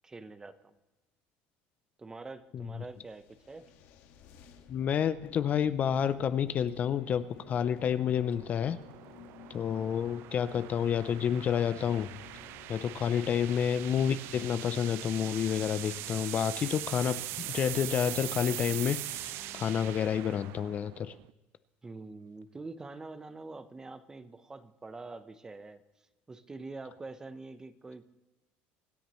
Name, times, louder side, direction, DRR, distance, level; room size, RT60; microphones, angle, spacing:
voice 1, 0.0-0.8 2.0-3.7 13.1-13.5 21.8-25.8 26.3-28.0, right 3 dB, 15° right, 12 dB, 0.8 m, -45 dB
sound 1, 2.4-20.7, left 8 dB, 65° left, 1.7 m, -55 dB
voice 2, 4.7-8.8 9.5-12.1 12.7-21.1, left 8 dB, 35° left, 13 dB, 0.5 m, -29 dB
sound 2, 5.1-21.3, right 16 dB, 60° right, 0.4 m, -42 dB
25.0 x 10.0 x 3.1 m, 1.1 s
cardioid pair, 140°, 4 cm